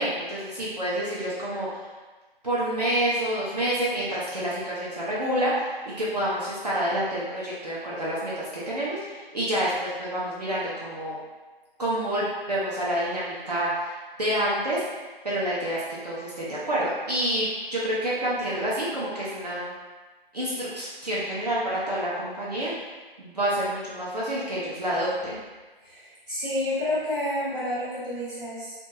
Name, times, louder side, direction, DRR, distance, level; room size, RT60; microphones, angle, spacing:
voice 1, 0.0-1.9 2.4-11.2 11.8-14.8 15.2-15.8 16.0-19.7 20.3-22.7 23.2-25.3, right 1 dB, 45° right, -8 dB, 0.5 m, -28 dB
voice 2, 25.8-28.7, left 1 dB, ahead, -22 dB, 0.7 m, -30 dB
2.3 x 2.1 x 2.6 m, 1.3 s
figure-of-eight pair, 165°, 29 cm